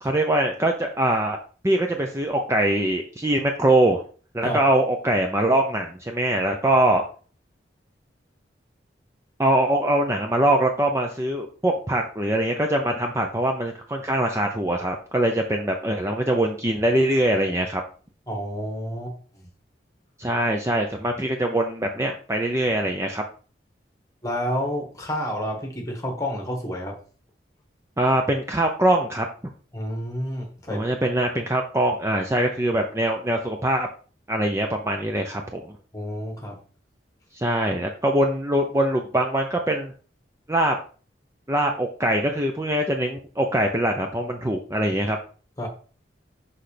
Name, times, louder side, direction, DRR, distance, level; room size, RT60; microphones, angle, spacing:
voice 1, 0.0-1.4 1.6-4.0 4.3-7.0 9.4-17.8 20.2-23.2 28.0-29.3 30.7-33.9 34.3-35.7 37.3-39.9 40.5-40.7 41.5-45.2, right 1 dB, 15° right, 3 dB, 0.5 m, -23 dB
voice 2, 18.3-19.5 24.2-27.0 29.7-30.9 35.9-36.6 45.6-45.7, equal, 15° left, 1 dB, 1.5 m, -29 dB
6.1 x 5.6 x 3.3 m, 0.39 s
head